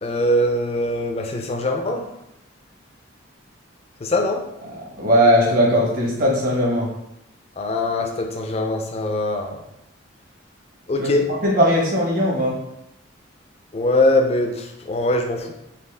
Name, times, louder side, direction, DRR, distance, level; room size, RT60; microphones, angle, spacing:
voice 1, 0.0-2.0 4.0-4.4 7.6-9.6 10.9-11.3 13.7-15.5, left 1 dB, 30° left, 4 dB, 0.4 m, -22 dB
voice 2, 4.8-6.9 11.0-12.5, equal, 45° right, -3 dB, 1.1 m, -19 dB
4.2 x 2.8 x 3.4 m, 0.85 s
head